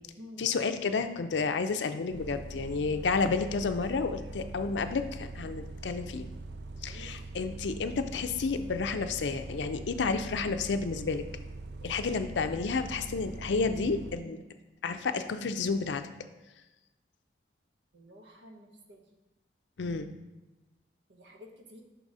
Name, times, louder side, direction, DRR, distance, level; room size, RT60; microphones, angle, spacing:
voice 1, 0.4-6.3 6.8-11.2 11.8-14.4 14.8-16.0 19.8-20.1, left 4 dB, 85° left, 9 dB, 0.5 m, -31 dB
Bus, 2.1-14.2, right 2 dB, 70° right, 0.4 m, -43 dB
voice 2, 6.8-7.3 17.9-19.1 21.1-21.8, left 1 dB, 90° right, 2 dB, 1.0 m, -51 dB
5.9 x 4.0 x 4.8 m, 1.1 s
head